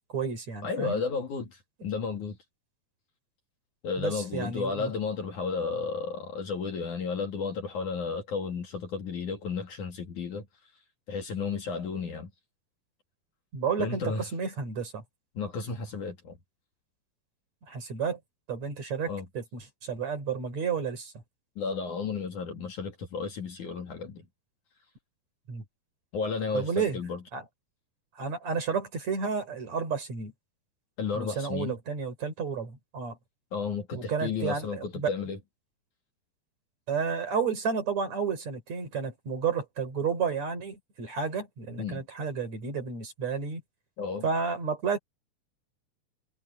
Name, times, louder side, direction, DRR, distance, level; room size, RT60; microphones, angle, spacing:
voice 1, 0.1-1.0 4.0-4.9 13.5-15.0 17.7-18.2 18.5-21.1 25.5-25.6 26.5-27.0 27.3-27.4 28.2-30.3 31.1-33.2 33.9-35.1 36.9-43.6 44.2-45.0, right 6 dB, 45° right, 5.0 m, -31 dB
voice 2, 0.6-2.4 3.8-10.5 11.1-12.3 13.8-14.3 15.3-16.4 19.1-19.3 21.6-24.2 26.1-27.2 31.0-31.8 33.5-35.4 41.8-42.0 44.0-44.3, left 5 dB, 55° left, 3.3 m, -33 dB
omnidirectional pair, 4.7 m